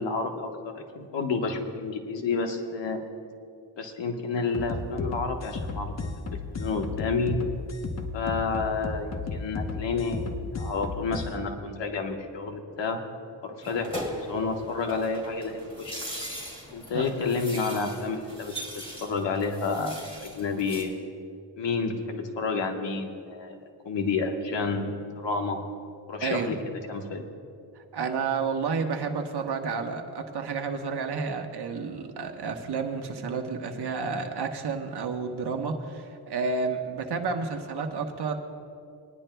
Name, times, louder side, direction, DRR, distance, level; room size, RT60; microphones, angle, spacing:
voice 1, 0.0-3.0 3.8-6.1 6.5-7.4 8.1-13.0 13.4-13.9 14.2-16.0 16.7-18.5 19.0-19.9 20.2-20.9 21.6-23.5 23.8-24.9 25.1-25.6 26.1-26.6 26.9-27.2, left 4 dB, 75° left, 3 dB, 1.3 m, -30 dB
sound 1, 4.5-11.3, left 3 dB, 35° left, 1.0 m, -34 dB
sound 2, 13.6-20.8, equal, 10° left, 2.7 m, -39 dB
voice 2, 26.2-26.6 27.9-38.4, right 5 dB, 60° right, 4 dB, 1.2 m, -30 dB
21.0 x 10.5 x 2.3 m, 2.4 s
cardioid pair, 85°, 44 cm